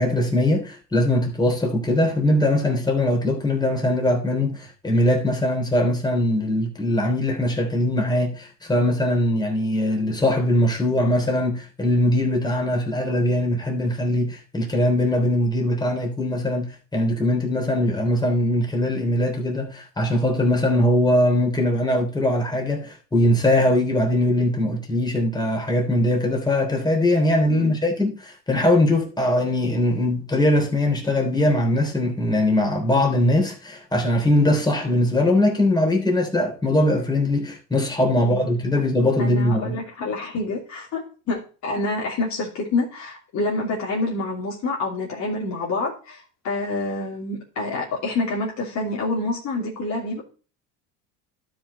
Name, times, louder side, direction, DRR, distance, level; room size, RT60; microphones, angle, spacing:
voice 1, 0.0-39.8, left 1 dB, 10° left, 3.2 m, -21 dB
voice 2, 38.2-38.5 39.2-50.2, left 2 dB, 50° left, 3.1 m, -27 dB
12.0 x 5.2 x 4.2 m
supercardioid pair, 105°, 36 cm